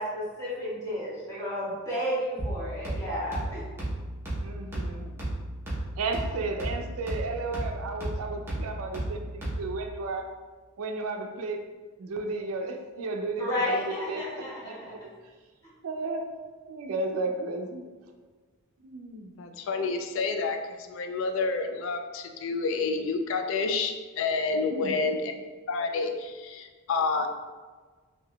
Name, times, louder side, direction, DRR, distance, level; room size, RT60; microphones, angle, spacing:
voice 1, 0.0-3.6 13.4-14.8, equal, 15° left, -11 dB, 1.4 m, -32 dB
sound 1, 2.4-9.9, right 1 dB, 10° right, 0.8 m, -34 dB
voice 2, 4.4-5.2 6.0-10.4 10.8-11.7 12.0-15.1 15.8-16.3 16.7-17.8 18.8-19.3 24.7-25.1, right 3 dB, 85° right, 4 dB, 0.4 m, -34 dB
voice 3, 19.4-25.3 25.7-27.3, left 4 dB, 65° left, 5 dB, 0.3 m, -29 dB
3.5 x 2.7 x 2.2 m, 1.4 s
head